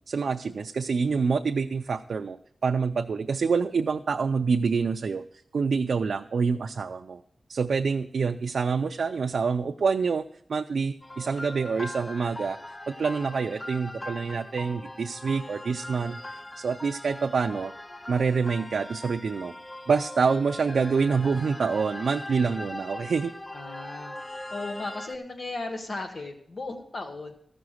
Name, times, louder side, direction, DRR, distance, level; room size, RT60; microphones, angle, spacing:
voice 1, 0.1-2.4 2.6-5.2 5.5-7.2 7.5-12.6 12.9-16.2 16.6-17.7 18.1-19.5 19.9-23.3, right 5 dB, 90° right, 5 dB, 0.4 m, -26 dB
sound 1, 11.0-25.2, left 1 dB, 20° left, 0.5 m, -41 dB
voice 2, 23.5-24.1 24.5-27.4, left 2 dB, 55° left, 4 dB, 1.1 m, -36 dB
14.0 x 6.0 x 6.4 m, 0.65 s
wide cardioid pair, 130°, 0 cm